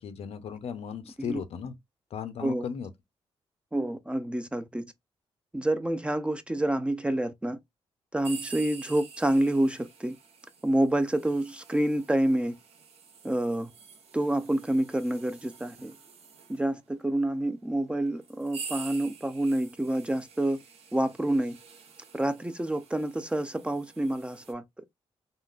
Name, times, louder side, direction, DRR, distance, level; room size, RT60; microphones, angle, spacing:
voice 1, 0.0-1.8 2.1-2.9, left 7 dB, 75° left, 0.5 m, -36 dB
voice 2, 3.7-4.8 5.5-7.6 8.1-10.2 10.6-12.5 13.2-13.7 14.1-15.9 16.5-20.6 20.9-21.6 22.1-24.8, right 1 dB, 10° right, 0.3 m, -28 dB
sound 1, 8.2-16.6 17.4-17.5 18.2-24.5, right 5 dB, 75° right, 0.7 m, -47 dB
3.6 x 2.0 x 2.4 m
cardioid pair, 110°, 10 cm